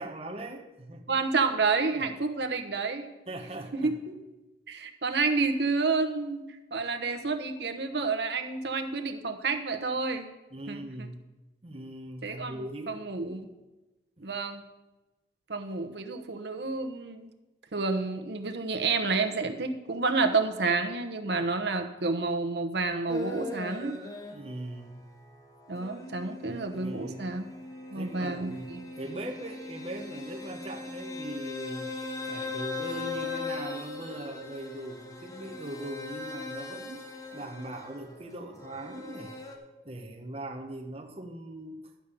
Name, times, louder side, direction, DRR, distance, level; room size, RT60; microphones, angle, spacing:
voice 1, 0.0-1.2 1.9-2.1 3.3-3.9 10.5-11.2 11.6-13.0 14.2-14.4 24.3-25.0 26.5-27.3 27.9-37.0 37.3-39.4 39.8-41.9, right 1 dB, 35° right, 3 dB, 0.9 m, -40 dB
voice 2, 1.1-3.1 3.8-4.2 4.7-6.4 6.7-10.3 10.7-11.1 12.2-13.5 14.2-14.6 15.5-17.3 17.7-24.0 25.7-27.4 27.9-28.8, right 4 dB, 70° right, 6 dB, 0.9 m, -29 dB
sound 1, 23.1-24.6 25.0-39.6, left 3 dB, 20° left, 1.1 m, -39 dB
11.5 x 5.2 x 7.0 m, 1.1 s
head